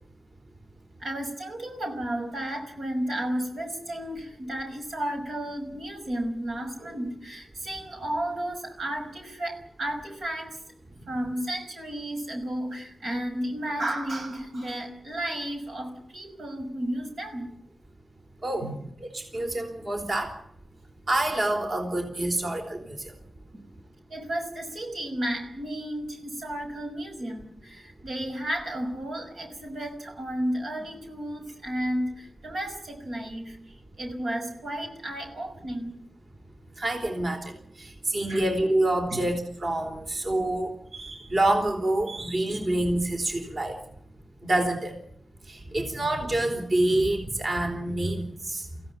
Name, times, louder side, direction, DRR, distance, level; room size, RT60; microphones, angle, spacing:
voice 1, 1.0-10.6 11.1-17.5 18.6-18.9 22.4-22.5 23.5-23.8 24.1-36.0 38.3-38.5 39.1-39.3, right 1 dB, 85° right, 3 dB, 5.9 m, -33 dB
voice 2, 19.0-20.4 21.1-23.1 36.8-43.8 44.4-45.0 45.5-48.8, right 1 dB, 50° right, 3 dB, 4.0 m, -27 dB
24.0 x 16.0 x 9.6 m, 0.70 s
wide cardioid pair, 95°, 0 cm